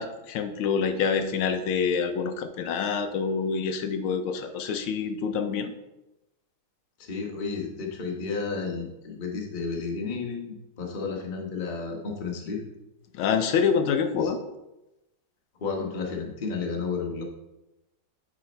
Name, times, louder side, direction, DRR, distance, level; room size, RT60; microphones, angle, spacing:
voice 1, 0.0-5.7 13.1-14.4, left 6 dB, 80° left, 7 dB, 1.4 m, -26 dB
voice 2, 7.0-12.6 14.1-14.3 15.6-17.2, left 4 dB, 30° left, 0 dB, 0.9 m, -32 dB
8.6 x 4.1 x 4.3 m, 0.97 s
omnidirectional pair, 2.3 m